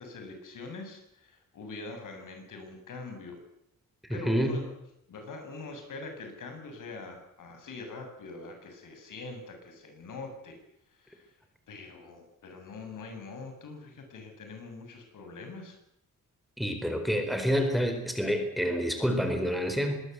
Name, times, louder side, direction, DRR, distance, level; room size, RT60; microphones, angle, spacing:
voice 1, 0.0-3.4 4.1-4.7 5.1-10.6 11.0-11.3 11.7-15.8, left 3 dB, 80° left, 5 dB, 7.8 m, -43 dB
voice 2, 4.1-4.6 16.6-20.0, equal, ahead, 6 dB, 4.4 m, -28 dB
24.5 x 20.5 x 8.2 m, 0.78 s
wide cardioid pair, 170°, 31 cm